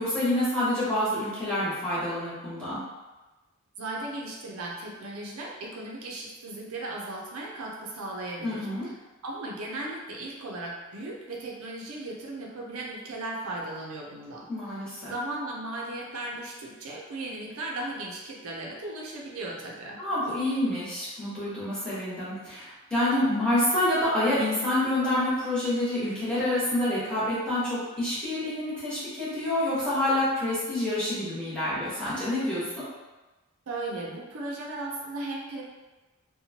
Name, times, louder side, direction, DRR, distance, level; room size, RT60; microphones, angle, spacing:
voice 1, 0.0-2.8 8.4-8.9 14.5-15.1 20.0-32.8, left 1 dB, 5° left, -12 dB, 1.1 m, -27 dB
voice 2, 3.8-8.7 9.2-14.5 15.0-20.0 33.7-35.6, right 2 dB, 80° right, -2 dB, 0.5 m, -36 dB
2.8 x 2.2 x 2.7 m, 1.2 s
head